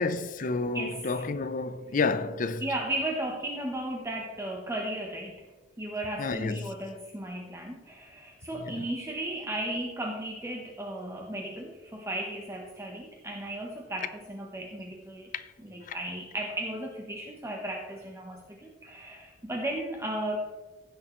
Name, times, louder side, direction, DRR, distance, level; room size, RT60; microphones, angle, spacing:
voice 1, 0.0-2.7 6.2-6.7 8.5-8.9 15.3-15.5 15.9-16.0, left 3 dB, 45° left, 0.5 m, -30 dB
voice 2, 0.7-1.2 2.6-5.4 5.8-15.3 15.6-20.6, right 1 dB, 15° right, 0.9 m, -35 dB
16.0 x 6.5 x 3.1 m
head